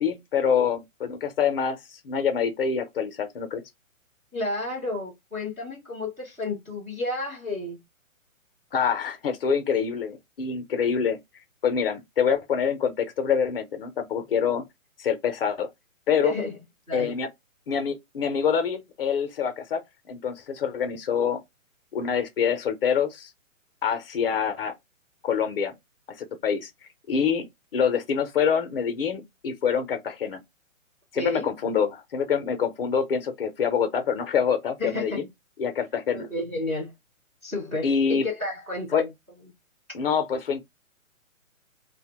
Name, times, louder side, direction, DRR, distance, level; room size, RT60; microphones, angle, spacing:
voice 1, 0.0-3.6 8.7-11.2 11.6-14.6 15.0-15.7 16.1-16.4 16.9-17.3 17.7-19.8 20.1-21.4 21.9-23.3 23.8-24.7 25.2-25.7 26.2-26.7 27.1-27.5 27.7-30.4 31.1-35.3 35.6-36.3 37.8-38.2 38.9-39.0 39.9-40.6, left 7 dB, 45° left, 0.6 m, -26 dB
voice 2, 4.3-7.8 16.2-16.6 16.9-17.1 31.1-31.5 34.8-35.2 36.1-36.9 37.4-39.1, left 2 dB, 5° right, 0.5 m, -31 dB
2.7 x 2.1 x 2.9 m
hypercardioid pair, 140°, 41 cm